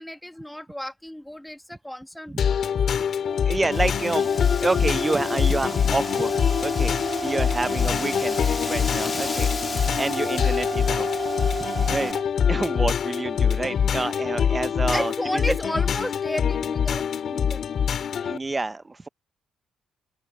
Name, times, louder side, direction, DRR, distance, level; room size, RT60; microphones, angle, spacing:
voice 1, 0.0-3.1 14.9-17.8, left 1 dB, 5° left, 1.3 m, -33 dB
sound 1, 2.4-18.4, left 7 dB, 60° left, 1.8 m, -24 dB
sound 2, 3.2-12.3, right 5 dB, 40° right, 3.6 m, -34 dB
voice 2, 3.5-6.3 6.6-8.4 8.6-9.5 10.0-11.1 11.9-12.2 12.5-15.6 18.2-19.1, right 3 dB, 20° right, 0.5 m, -28 dB
Wind, 3.7-12.1, left 4 dB, 35° left, 1.5 m, -37 dB
open air
cardioid pair, 90°, 0 cm